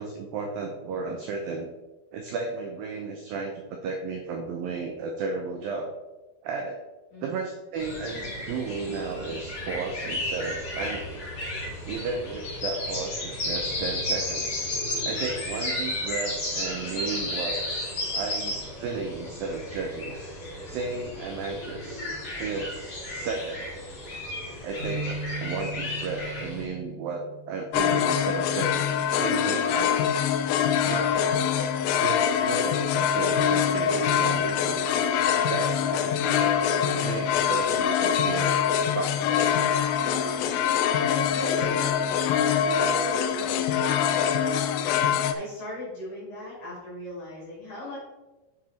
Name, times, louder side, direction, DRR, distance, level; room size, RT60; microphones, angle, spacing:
voice 1, 0.0-1.7 2.1-5.9 6.4-6.8 7.2-11.3 11.9-14.7 15.0-17.6 18.1-20.2 20.7-22.1 22.4-23.7 24.6-30.0 30.8-31.5 32.0-34.8 35.5-36.6 37.0-38.6 38.9-39.7, right 4 dB, 80° right, 3 dB, 2.0 m, -34 dB
voice 2, 7.1-7.4 40.3-42.0 42.4-48.0, left 1 dB, 55° left, -7 dB, 4.2 m, -38 dB
sound 1, 7.7-26.6, left 1 dB, 35° left, 2.6 m, -33 dB
sound 2, 24.8-29.1 29.5-29.8 30.6-31.0, right 2 dB, 55° right, 2.2 m, -39 dB
sound 3, 27.7-45.3, left 8 dB, 85° left, 2.8 m, -24 dB
7.9 x 6.3 x 4.3 m, 1.1 s
omnidirectional pair, 5.1 m